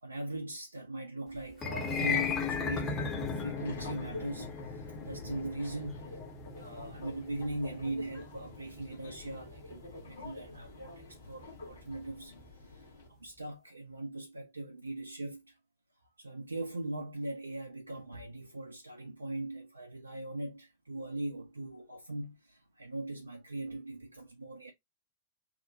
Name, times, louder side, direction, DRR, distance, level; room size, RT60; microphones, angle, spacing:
voice 1, 0.0-6.1 6.6-15.6 16.0-24.7, right 2 dB, 80° right, 0.4 m, -40 dB
sound 1, 1.5-11.8, left 5 dB, 25° left, 0.8 m, -37 dB
Subway metro underground, 3.0-13.1, left 2 dB, 65° left, 1.0 m, -48 dB
2.8 x 2.1 x 2.5 m
figure-of-eight pair, 90°, 0 cm